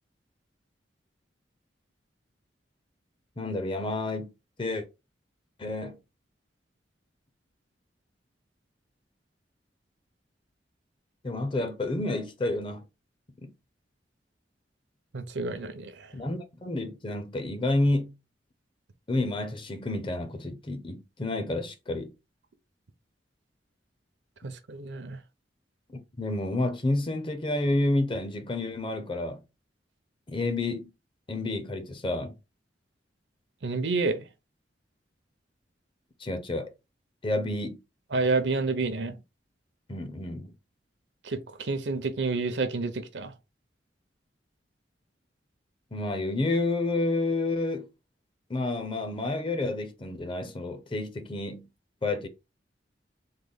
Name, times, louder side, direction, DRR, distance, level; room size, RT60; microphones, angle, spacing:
voice 1, 3.4-4.3 4.6-4.8 5.6-6.0 11.2-12.8 13.4-13.5 16.1-18.1 19.1-22.1 26.2-29.4 30.3-30.9 31.3-32.3 36.2-36.7 37.2-37.8 39.9-40.5 45.9-47.9 48.5-51.7 52.0-52.3, left 2 dB, 30° left, 0.6 m, -29 dB
voice 2, 15.1-16.1 24.4-25.2 33.6-34.2 38.1-39.1 41.2-43.3, right 3 dB, 75° right, 0.6 m, -29 dB
3.8 x 2.2 x 3.4 m
head